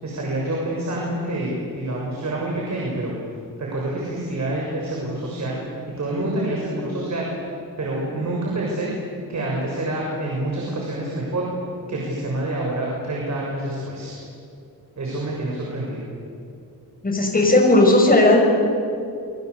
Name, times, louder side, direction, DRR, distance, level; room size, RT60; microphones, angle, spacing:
voice 1, 0.0-3.1 3.6-5.6 6.0-7.4 7.8-8.9 9.3-11.5 11.9-14.2 15.0-16.0, right 1 dB, 50° right, -3 dB, 6.9 m, -27 dB
voice 2, 17.0-18.4, left 2 dB, 25° left, 1 dB, 6.6 m, -15 dB
28.5 x 23.5 x 8.4 m, 2.5 s
wide cardioid pair, 125°, 35 cm